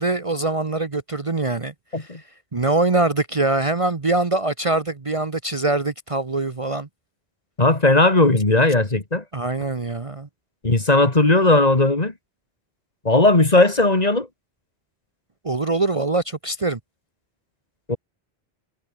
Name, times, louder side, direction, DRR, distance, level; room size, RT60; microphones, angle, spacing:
voice 1, 0.0-2.1 2.5-6.9 9.3-10.3 15.4-16.8, right 2 dB, 30° right, 1.1 m, -23 dB
voice 2, 7.6-9.2 10.6-12.1 13.0-14.3 17.9-18.0, left 2 dB, 35° left, 2.5 m, -17 dB
omnidirectional pair, 1.1 m